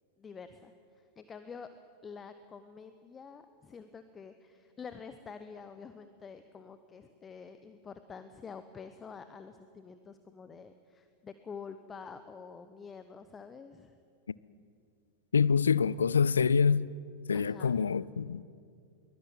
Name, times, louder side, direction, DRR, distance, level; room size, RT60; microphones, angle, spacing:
voice 1, 0.2-1.7 2.0-13.9 17.3-17.8, left 5 dB, 20° left, 1.1 m, -48 dB
voice 2, 15.3-16.9 17.3-18.4, left 6 dB, 70° left, 0.5 m, -26 dB
23.0 x 19.5 x 9.2 m
figure-of-eight pair, 90°, 0 cm